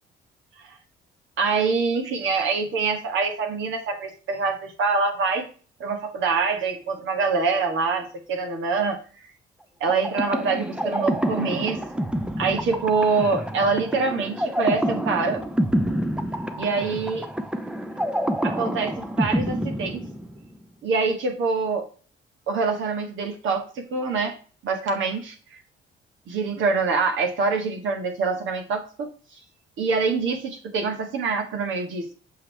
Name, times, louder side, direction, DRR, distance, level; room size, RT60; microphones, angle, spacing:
voice 1, 1.4-5.5 5.8-9.0 9.8-11.8 12.4-15.4 16.6-17.3 18.4-20.1 20.8-21.8 22.5-24.4 24.6-25.3 26.3-29.1 29.8-32.1, right 4 dB, 75° right, 4 dB, 1.5 m, -25 dB
sound 1, 9.9-20.6, equal, 5° right, 0.7 m, -27 dB
7.4 x 4.6 x 3.3 m, 0.39 s
cardioid pair, 90°, 20 cm